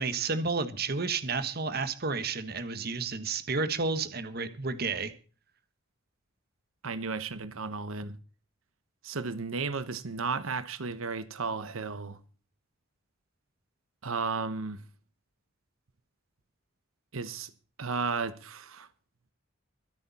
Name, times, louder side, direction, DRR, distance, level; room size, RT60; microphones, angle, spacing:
voice 1, 0.0-5.1, right 4 dB, 50° right, 1.4 m, -31 dB
voice 2, 6.8-8.2 9.0-12.2 14.0-14.8 17.1-17.5 17.8-18.9, right 4 dB, 90° right, 1.1 m, -34 dB
24.0 x 8.5 x 4.2 m
head